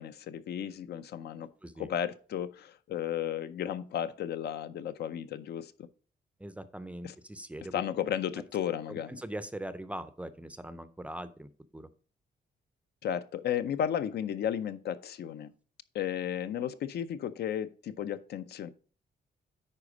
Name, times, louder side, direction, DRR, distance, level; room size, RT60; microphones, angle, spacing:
voice 1, 0.0-1.5 1.8-5.9 7.0-7.2 7.7-9.2 13.0-15.5 15.9-18.7, left 9 dB, 70° left, 0.6 m, -34 dB
voice 2, 6.4-7.8 8.9-11.9, right 1 dB, 5° right, 0.4 m, -41 dB
9.9 x 4.3 x 4.9 m
wide cardioid pair, 170°, 18 cm